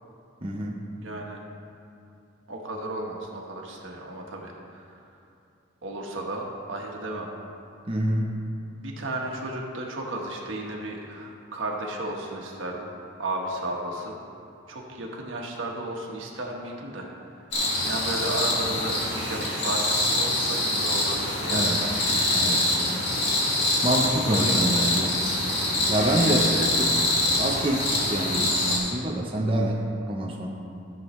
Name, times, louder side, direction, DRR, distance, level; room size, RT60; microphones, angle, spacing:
voice 1, 0.4-0.8 7.9-8.3 21.5-21.8 22.3-22.6 23.8-25.1 25.9-26.5 26.9-27.0 27.4-29.8 30.1-30.5, right 1 dB, 30° right, -2 dB, 0.8 m, -26 dB
voice 2, 1.0-1.4 2.5-4.9 5.8-7.3 8.8-12.9 13.2-14.1 14.7-17.3 17.8-21.8 24.3-24.8 26.4-26.7, right 2 dB, 85° right, -1 dB, 1.4 m, -34 dB
sound 1, 17.5-28.8, left 1 dB, 60° left, 2.0 m, -25 dB
14.0 x 7.2 x 3.2 m, 2.7 s
head